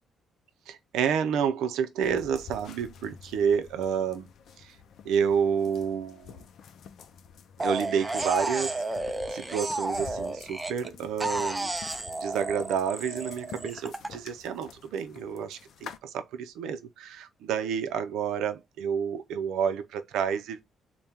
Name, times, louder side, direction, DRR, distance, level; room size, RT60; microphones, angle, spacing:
voice 1, 0.7-4.3 4.6-4.8 5.0-6.4 7.6-8.8 9.3-11.7 12.2-20.6, right 7 dB, 85° right, 0.5 m, -29 dB
sound 1, 2.0-16.0, left 7 dB, 70° left, 0.4 m, -49 dB
sound 2, 7.6-10.9 11.2-14.1, right 2 dB, 15° right, 0.5 m, -32 dB
3.5 x 2.2 x 4.2 m
cardioid pair, 90°, 0 cm